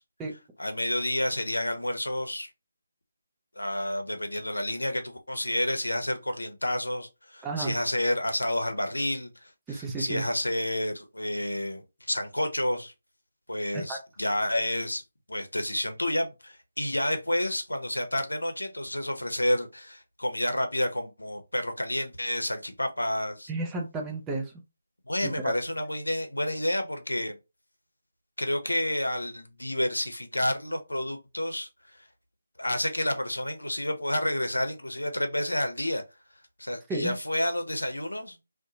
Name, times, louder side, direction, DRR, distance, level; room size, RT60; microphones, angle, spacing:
voice 1, 0.6-2.5 3.6-12.9 13.5-15.0 15.3-23.5 25.1-27.4 28.4-31.7 32.6-36.0 36.6-38.4, left 1 dB, 80° left, 0.6 m, -30 dB
voice 2, 7.4-7.8 9.7-10.3 13.7-14.0 23.5-24.5 25.2-25.5 36.9-37.2, right 2 dB, 10° right, 0.5 m, -32 dB
2.6 x 2.1 x 2.7 m
figure-of-eight pair, 150°, 0 cm